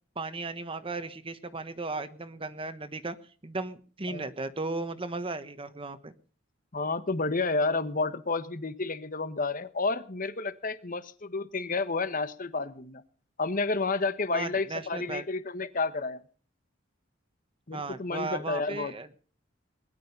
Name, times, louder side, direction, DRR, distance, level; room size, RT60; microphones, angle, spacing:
voice 1, 0.1-3.2 3.4-6.1 14.3-15.2 17.7-19.1, right 3 dB, 30° right, 11 dB, 1.2 m, -36 dB
voice 2, 6.7-13.0 13.4-16.2 17.7-18.9, left 3 dB, 45° left, 12 dB, 1.3 m, -30 dB
21.0 x 11.5 x 5.5 m, 0.41 s
head